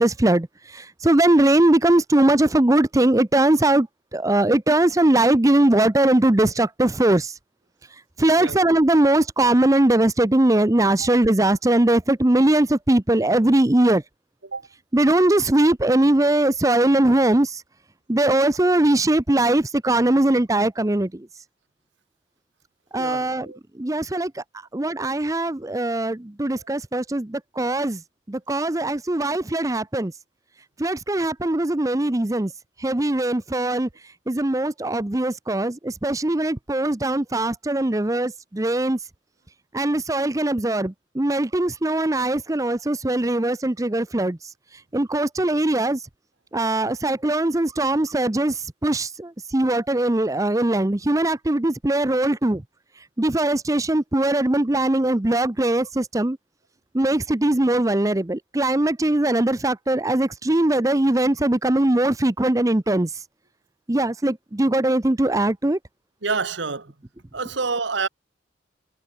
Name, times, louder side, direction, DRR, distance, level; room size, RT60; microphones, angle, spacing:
voice 1, 0.0-3.9 4.1-7.3 8.2-14.0 14.9-17.6 18.1-21.3 22.9-23.5 23.8-24.4 24.7-28.0 28.3-30.1 30.8-32.5 32.8-33.9 34.3-39.0 39.7-44.4 44.9-46.0 46.5-52.6 53.2-56.4 56.9-63.1 63.9-65.8, right 1 dB, 15° right, 0.6 m, -20 dB
voice 2, 23.0-23.6 26.6-26.7 66.2-66.9 67.3-68.1, right 4 dB, 70° right, 1.4 m, -28 dB
head